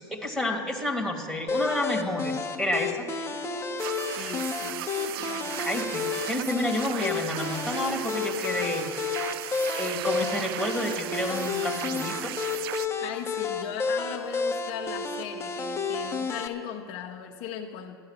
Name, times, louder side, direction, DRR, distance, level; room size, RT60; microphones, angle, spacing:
voice 1, 0.0-3.1 5.6-8.9 9.8-12.3, left 1 dB, ahead, 1 dB, 2.2 m, -30 dB
sound 1, 1.5-16.5, left 4 dB, 20° left, 1.3 m, -31 dB
sound 2, 3.8-12.9, right 15 dB, 70° right, 0.4 m, -36 dB
voice 2, 4.2-5.9 13.0-18.0, left 8 dB, 55° left, 2 dB, 1.1 m, -38 dB
13.5 x 11.0 x 7.4 m, 2.3 s
hypercardioid pair, 95°, 13 cm